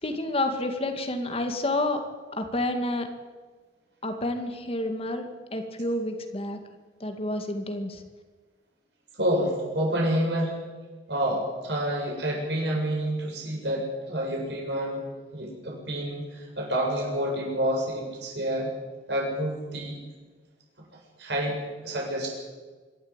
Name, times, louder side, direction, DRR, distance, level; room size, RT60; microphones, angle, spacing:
voice 1, 0.0-2.0 2.3-3.1 4.0-6.6 7.0-8.0, left 1 dB, 30° left, 6 dB, 2.1 m, -29 dB
voice 2, 9.1-10.6 11.1-15.0 15.3-18.7 19.1-20.0 21.2-22.3, right 1 dB, 65° right, -1 dB, 7.8 m, -28 dB
25.5 x 12.5 x 9.0 m, 1.4 s
head